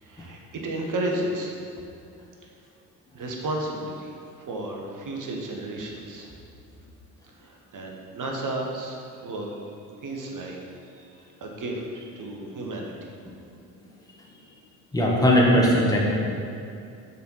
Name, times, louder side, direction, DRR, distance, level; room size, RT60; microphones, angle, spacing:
voice 1, 0.0-1.5 3.1-6.3 7.4-9.0 9.2-9.5 10.0-10.6 11.0-12.9, right 1 dB, 45° right, 0 dB, 1.4 m, -33 dB
voice 2, 14.9-16.0, equal, 10° left, -4 dB, 1.7 m, -19 dB
6.4 x 4.1 x 5.5 m, 2.5 s
hypercardioid pair, 50°, 44 cm